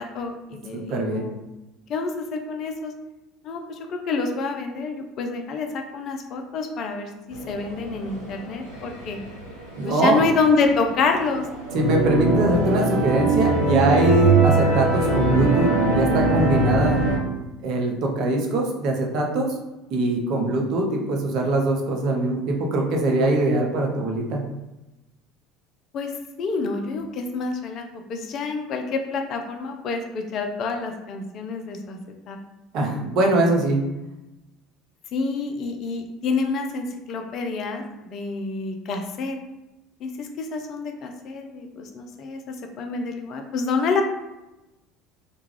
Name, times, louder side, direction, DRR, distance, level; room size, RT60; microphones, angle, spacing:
voice 1, 0.0-1.3 1.9-2.9 3.4-3.6 3.9-9.2 9.9-11.5 25.9-26.1 26.4-32.0 32.3-32.4 35.1-39.4 40.0-44.0, left 4 dB, 45° left, 4 dB, 0.4 m, -27 dB
voice 2, 0.7-1.3 9.8-10.3 11.7-17.0 17.6-19.5 19.9-24.4 32.7-33.8, right 2 dB, 50° right, 1 dB, 0.5 m, -22 dB
sound 1, 7.3-17.2, right 3 dB, 90° right, 0.7 m, -22 dB
2.3 x 2.2 x 3.1 m, 0.99 s
figure-of-eight pair, 65°, 0 cm